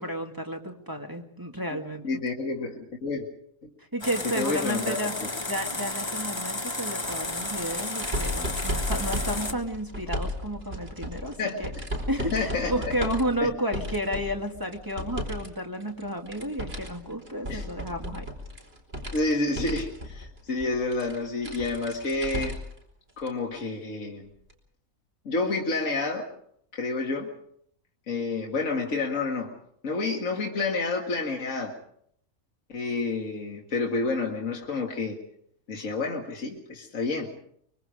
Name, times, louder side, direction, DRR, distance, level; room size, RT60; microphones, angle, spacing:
voice 1, 0.0-2.2 3.8-5.1 5.5-11.7 12.1-18.3, equal, 15° right, 2 dB, 2.2 m, -32 dB
voice 2, 2.0-3.3 3.6-3.7 4.2-5.3 11.4-11.6 12.2-12.9 13.4-13.5 17.5-17.7 19.1-22.6 23.2-24.3 25.3-26.2 26.7-27.3 28.1-29.5 29.8-31.8 32.7-35.2 35.7-37.3, left 3 dB, 65° left, 0 dB, 2.2 m, -29 dB
sound 1, 4.0-9.5, left 2 dB, 20° left, 1.3 m, -32 dB
sound 2, 7.0-15.5 15.8-22.8 23.2-23.3 24.5-24.6, equal, 45° right, 4.7 m, -35 dB
25.0 x 23.5 x 5.0 m, 0.69 s
omnidirectional pair, 1.5 m